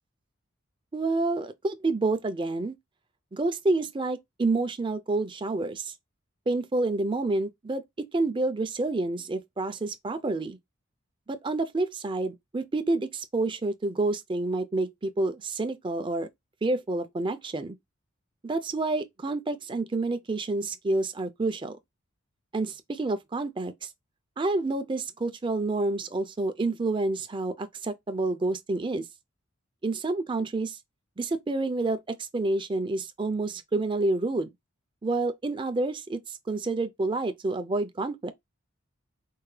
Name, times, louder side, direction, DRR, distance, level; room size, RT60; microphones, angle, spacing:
voice 1, 0.9-2.8 3.3-5.9 6.5-7.8 8.1-10.6 11.3-16.3 16.6-17.8 18.4-21.8 22.5-23.9 24.4-29.0 29.8-30.8 31.2-34.5 35.0-38.3, right 2 dB, 25° right, 0.4 m, -28 dB
4.4 x 2.2 x 3.2 m
head